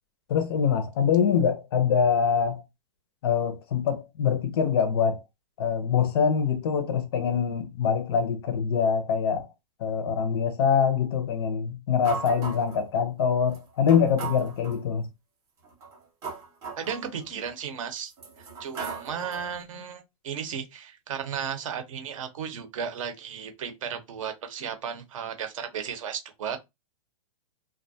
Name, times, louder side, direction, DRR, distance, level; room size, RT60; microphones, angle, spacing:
voice 1, 0.3-2.6 3.2-5.2 5.6-9.5 9.8-15.1, left 7 dB, 40° left, 0.4 m, -24 dB
sound 1, 12.0-12.9 13.5-13.6 13.9-14.8 15.6-17.5 18.1-19.6, right 5 dB, 15° right, 0.5 m, -38 dB
voice 2, 16.8-18.1 18.4-26.6, right 7 dB, 55° right, 0.7 m, -35 dB
2.3 x 2.1 x 2.6 m
hypercardioid pair, 165°, 20 cm